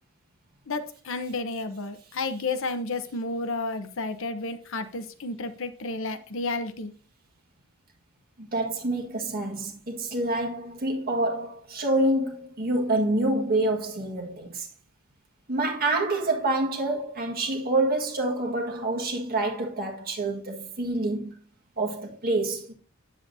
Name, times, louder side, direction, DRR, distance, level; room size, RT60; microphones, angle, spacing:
voice 1, 0.7-6.9, left 3 dB, 60° left, 0.8 m, -31 dB
voice 2, 8.4-14.7 15.5-21.3 21.8-22.7, right 2 dB, 45° right, 1.7 m, -27 dB
8.5 x 7.6 x 2.7 m
head